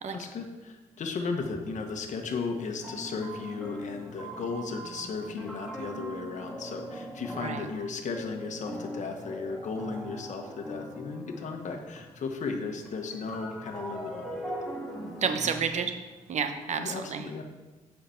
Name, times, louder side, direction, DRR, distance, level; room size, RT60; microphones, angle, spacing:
voice 1, 0.1-14.7 16.7-17.4, left 4 dB, 65° left, 4 dB, 1.2 m, -35 dB
sound 1, 1.9-2.0 2.8-12.3 12.6-16.5, equal, ahead, 2.2 m, -41 dB
voice 2, 15.2-15.9 16.3-17.3, right 6 dB, 60° right, 7 dB, 1.0 m, -30 dB
7.8 x 5.9 x 5.8 m, 1.2 s
cardioid pair, 90°, 13 cm